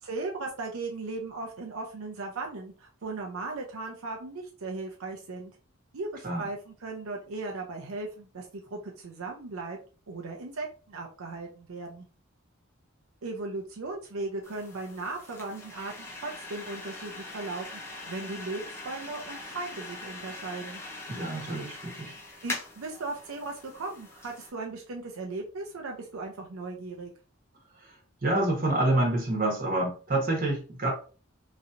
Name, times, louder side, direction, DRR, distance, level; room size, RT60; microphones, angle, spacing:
voice 1, 0.0-5.5 5.9-9.8 10.1-12.1 13.2-15.9 16.2-20.8 22.4-27.1, right 3 dB, 90° right, 0 dB, 0.6 m, -37 dB
sound 1, 14.4-24.5, left 2 dB, 10° left, 0.6 m, -42 dB
voice 2, 21.1-22.1 28.2-30.9, right 1 dB, 40° right, -1 dB, 1.2 m, -27 dB
3.0 x 2.7 x 2.6 m, 0.37 s
head